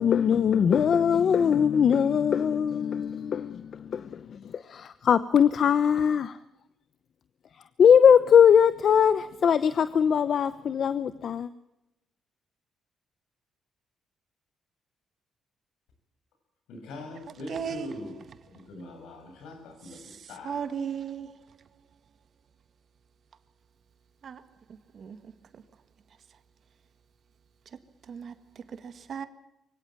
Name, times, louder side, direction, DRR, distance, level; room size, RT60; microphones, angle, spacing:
voice 1, 0.0-6.4 7.8-11.5, left 7 dB, 55° left, 0.9 m, -21 dB
voice 2, 16.7-18.1 18.7-19.5 19.8-20.0 20.3-20.5, left 2 dB, 85° left, 7.2 m, -41 dB
voice 3, 17.5-17.9 20.4-21.3 24.2-24.4 25.0-25.2 28.1-28.3 28.8-29.3, right 7 dB, 55° right, 2.0 m, -35 dB
23.5 x 17.0 x 7.3 m
cardioid pair, 90°, 0 cm